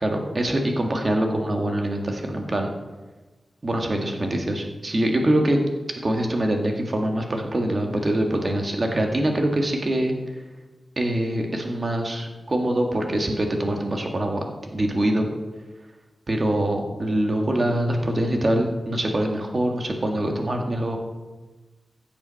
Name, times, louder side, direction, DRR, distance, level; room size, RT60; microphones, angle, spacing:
voice 1, 0.0-2.7 3.6-5.6 6.0-10.1 11.0-14.4 14.7-15.3 16.3-21.0, right 1 dB, 35° right, 2 dB, 1.9 m, -24 dB
16.0 x 7.2 x 5.7 m, 1.2 s
wide cardioid pair, 140°, 0 cm